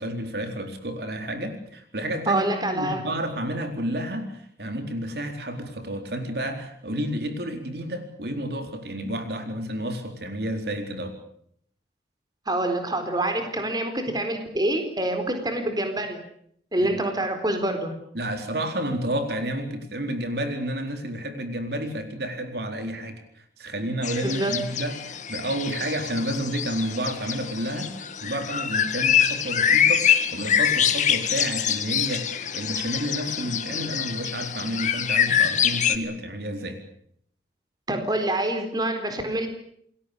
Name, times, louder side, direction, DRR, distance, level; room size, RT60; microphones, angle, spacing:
voice 1, 0.0-11.2 16.8-17.0 18.1-36.8, right 1 dB, 65° right, 6 dB, 4.2 m, -31 dB
voice 2, 2.3-3.0 12.5-16.2 16.7-17.9 24.2-24.5 37.9-39.5, right 1 dB, 25° right, 6 dB, 4.2 m, -26 dB
sound 1, 24.0-36.0, left 8 dB, 45° left, 1.9 m, -25 dB
28.5 x 21.5 x 7.0 m, 0.66 s
head